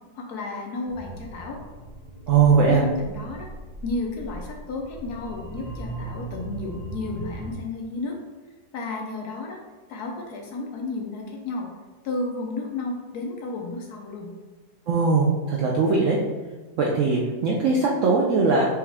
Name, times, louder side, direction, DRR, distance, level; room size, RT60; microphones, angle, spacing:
voice 1, 0.1-1.6 2.7-3.5 3.8-8.2 8.7-9.6 9.9-11.7 12.0-14.3, left 3 dB, 70° left, 0 dB, 1.1 m, -32 dB
sound 1, 0.9-7.5, right 1 dB, 40° right, 0.6 m, -38 dB
voice 2, 2.3-2.8 14.9-16.2 16.8-18.7, right 4 dB, 85° right, -2 dB, 0.7 m, -20 dB
4.8 x 3.0 x 3.5 m, 1.2 s
omnidirectional pair, 1.9 m